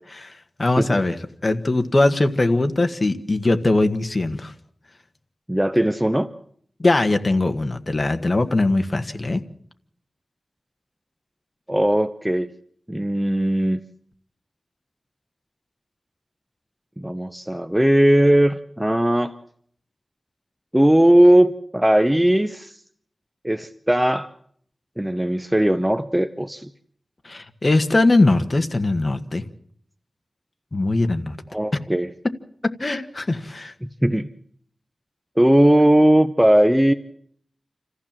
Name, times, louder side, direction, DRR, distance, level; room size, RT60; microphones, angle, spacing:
voice 1, 0.3-1.2 1.4-4.5 6.8-9.4 27.2-29.4 30.7-31.4 32.6-33.7, left 2 dB, 40° left, 8 dB, 1.5 m, -21 dB
voice 2, 5.5-6.3 11.7-12.5 12.9-13.8 17.0-19.3 20.7-22.8 23.4-24.3 25.0-26.7 31.5-32.1 34.0-34.3 35.4-36.9, right 1 dB, 10° right, 10 dB, 0.8 m, -18 dB
27.5 x 15.0 x 7.5 m, 0.65 s
wide cardioid pair, 80°, 0 cm